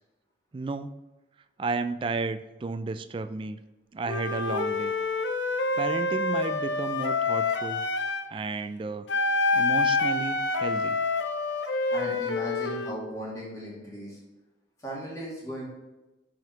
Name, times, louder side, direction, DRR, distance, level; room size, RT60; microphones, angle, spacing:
voice 1, 0.5-1.0 1.6-3.6 3.9-4.9 5.8-7.9 8.3-9.1 9.5-11.0, right 3 dB, 30° right, 11 dB, 0.3 m, -32 dB
Wind instrument woodwind instrument, 4.1-8.3 9.1-13.0, left 3 dB, 80° left, 0.5 m, -27 dB
voice 2, 11.9-14.2 14.8-15.7, equal, 20° left, -6 dB, 2.3 m, -37 dB
6.5 x 5.1 x 4.5 m, 1.1 s
head